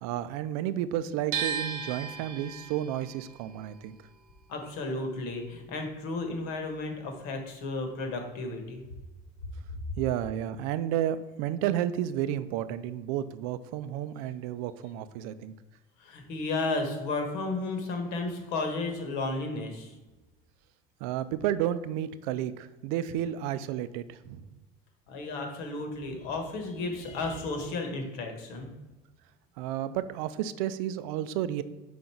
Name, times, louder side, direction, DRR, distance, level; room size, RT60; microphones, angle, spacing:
voice 1, 0.0-4.0 10.0-15.5 21.0-24.4 29.6-31.6, right 11 dB, 80° right, 14 dB, 0.5 m, -31 dB
sound 1, 1.3-7.3 7.6-8.9, right 7 dB, 50° right, 0.8 m, -38 dB
voice 2, 4.5-8.8 16.0-20.0 25.1-28.7, left 3 dB, 60° left, 4 dB, 1.4 m, -33 dB
5.1 x 3.9 x 5.8 m, 1.1 s
cardioid pair, 170°, 18 cm